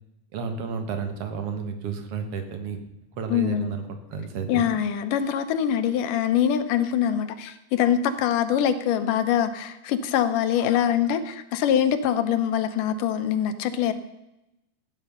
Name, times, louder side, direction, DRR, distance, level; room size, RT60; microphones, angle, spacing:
voice 1, 0.3-2.8 3.1-4.6, right 6 dB, 55° right, 7 dB, 2.2 m, -32 dB
voice 2, 3.3-3.8 4.5-13.9, left 9 dB, 85° left, 10 dB, 2.5 m, -24 dB
15.0 x 9.7 x 5.6 m, 0.90 s
omnidirectional pair, 3.7 m